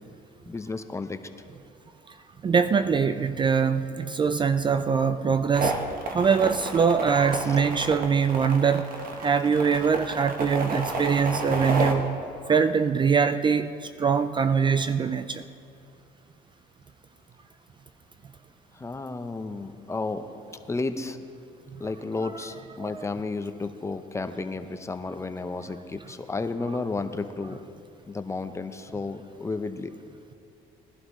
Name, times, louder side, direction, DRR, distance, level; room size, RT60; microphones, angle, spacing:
voice 1, 0.5-1.2 7.5-7.6 18.8-20.3 20.7-21.2 21.8-27.6 28.1-29.9, left 3 dB, 15° left, 8 dB, 0.6 m, -32 dB
voice 2, 2.4-5.8 6.1-8.9 9.2-12.1 12.5-15.4 21.7-21.8 22.2-22.3 22.8-23.1, right 6 dB, 30° right, 11 dB, 0.4 m, -23 dB
sound 1, 5.5-11.9, right 3 dB, 55° right, 1.3 m, -30 dB
19.0 x 11.5 x 3.1 m, 2.5 s
cardioid pair, 110°, 17 cm